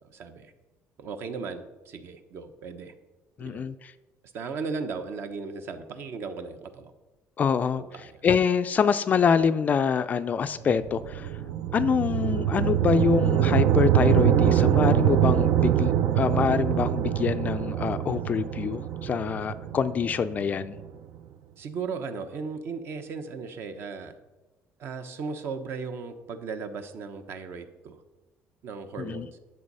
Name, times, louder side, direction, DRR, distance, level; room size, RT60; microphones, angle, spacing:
voice 1, 0.1-0.5 1.0-2.9 3.4-3.6 4.3-6.9 7.8-8.3 21.6-24.1 24.8-28.0 28.6-29.4, right 5 dB, 50° right, 9 dB, 1.0 m, -36 dB
voice 2, 3.4-3.9 7.4-11.3 11.7-20.8 29.0-29.3, left 6 dB, 30° left, 12 dB, 0.4 m, -25 dB
sound 1, 10.6-20.9, right 10 dB, 65° right, 0.6 m, -24 dB
11.0 x 7.4 x 5.5 m, 1.1 s
cardioid pair, 165°, 5 cm